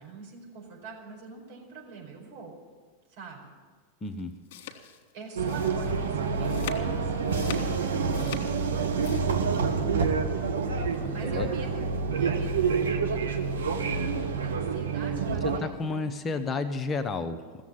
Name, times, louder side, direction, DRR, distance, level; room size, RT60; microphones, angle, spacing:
voice 1, 0.0-2.5 3.1-3.5 5.1-8.9 9.4-10.5 11.1-16.5, right 4 dB, 60° right, -1 dB, 4.6 m, -46 dB
sound 1, 4.0-9.2, left 9 dB, 60° left, 1.5 m, -42 dB
voice 2, 4.0-4.4 11.0-11.5 15.4-17.6, left 3 dB, 25° left, 8 dB, 0.9 m, -32 dB
sound 2, 5.4-15.6, right 5 dB, 80° right, 1.2 m, -27 dB
15.5 x 7.3 x 9.7 m, 1.5 s
hypercardioid pair, 90°, 0 cm